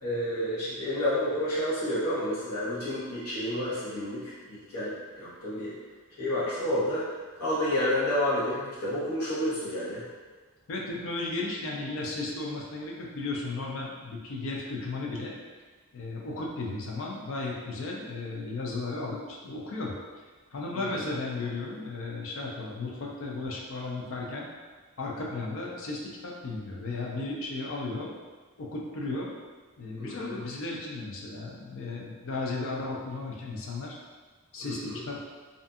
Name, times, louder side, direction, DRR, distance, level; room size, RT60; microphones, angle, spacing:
voice 1, 0.0-5.7 6.2-7.0 7.4-10.0 20.7-21.0 30.0-30.4 34.6-35.0, left 1 dB, 85° left, -9 dB, 1.1 m, -30 dB
voice 2, 10.7-15.3 15.9-19.9 20.5-24.5 25.0-28.1 28.6-29.3 29.8-33.9 34.5-35.2, left 3 dB, 60° left, -2 dB, 0.5 m, -35 dB
2.6 x 2.4 x 2.3 m, 1.4 s
head